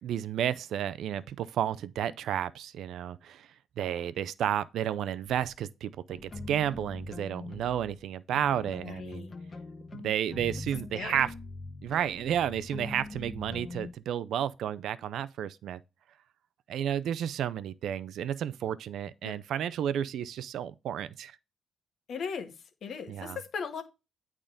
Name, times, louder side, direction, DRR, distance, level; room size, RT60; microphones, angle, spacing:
voice 1, 0.0-3.5 3.8-9.3 9.9-11.3 11.8-15.8 16.7-21.4 23.1-23.4, right 10 dB, 75° right, 0.4 m, -32 dB
sound 1, 5.2-5.5 6.1-8.0 8.3-13.9, left 3 dB, 35° left, 1.3 m, -43 dB
voice 2, 8.6-9.3 10.9-11.2 19.2-19.4 22.1-22.5 22.8-23.8, left 6 dB, 60° left, 1.5 m, -38 dB
8.7 x 3.7 x 5.1 m
cardioid pair, 90°, 0 cm